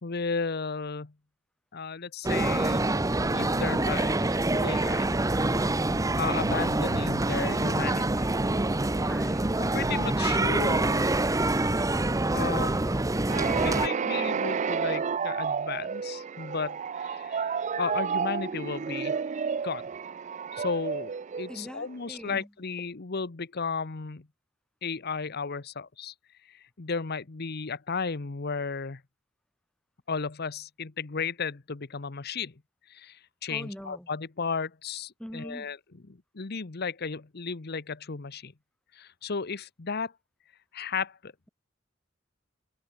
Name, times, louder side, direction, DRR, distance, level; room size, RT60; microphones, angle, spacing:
voice 1, 0.0-1.1 1.7-2.8 3.2-5.1 6.2-8.3 9.6-11.1 12.3-13.0 13.5-19.2 19.6-19.9 20.5-24.3 24.8-26.1 26.5-29.0 30.1-32.6 32.9-35.8 36.1-38.5 38.9-40.1 40.7-41.5, left 5 dB, 55° left, 0.9 m, -34 dB
sound 1, 2.2-13.9, right 2 dB, 15° right, 0.8 m, -26 dB
voice 2, 5.5-5.9 9.0-9.6 21.5-22.5 33.5-34.1 35.2-35.7, equal, 5° left, 3.4 m, -41 dB
sound 2, 13.3-22.0, right 6 dB, 40° right, 0.4 m, -31 dB
head